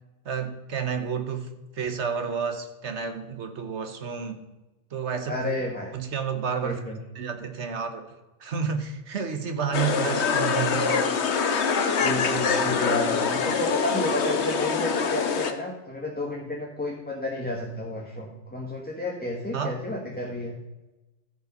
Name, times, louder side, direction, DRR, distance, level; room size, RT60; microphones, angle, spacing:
voice 1, 0.2-4.4 4.9-5.5 5.9-6.8 7.1-8.1 8.4-11.1 13.3-13.5 19.5-19.7, right 6 dB, 75° right, 7 dB, 1.4 m, -30 dB
voice 2, 5.3-5.9 6.6-7.0 12.0-20.6, left 1 dB, 10° left, -2 dB, 1.3 m, -31 dB
sound 1, 9.7-15.5, left 5 dB, 70° left, 1.2 m, -24 dB
14.0 x 5.5 x 5.3 m, 1.1 s
omnidirectional pair, 1.2 m